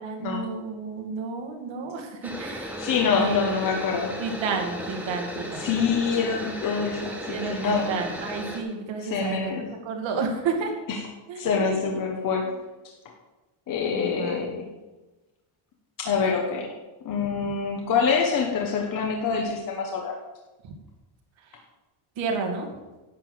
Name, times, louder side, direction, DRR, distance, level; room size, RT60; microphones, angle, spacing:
voice 1, 0.0-2.9 3.1-3.4 4.2-5.7 7.3-10.7 11.3-11.9 12.3-12.5 13.9-14.5 20.6-20.7 21.5-21.6 22.2-22.7, right 4 dB, 65° right, 2 dB, 2.5 m, -31 dB
sound 1, 2.2-8.6, equal, 5° right, 1.7 m, -35 dB
voice 2, 2.8-4.1 5.5-7.9 9.0-9.7 11.4-12.5 13.7-14.7 16.0-16.7 17.0-20.1, left 5 dB, 40° left, 1 dB, 1.3 m, -25 dB
11.0 x 6.9 x 7.8 m, 1.1 s
cardioid pair, 180°, 49 cm